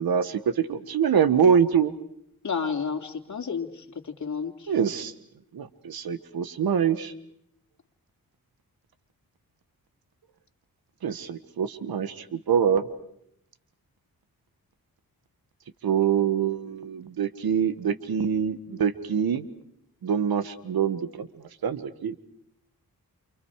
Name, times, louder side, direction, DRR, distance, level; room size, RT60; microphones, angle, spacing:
voice 1, 0.0-1.9 4.7-5.1 5.5-7.1 11.0-12.8 15.8-19.4 20.0-21.3 21.6-22.2, right 7 dB, 80° right, 12 dB, 1.6 m, -25 dB
voice 2, 2.4-4.7, left 6 dB, 50° left, 3 dB, 2.9 m, -31 dB
29.5 x 29.0 x 4.9 m, 0.74 s
cardioid pair, 60°, 36 cm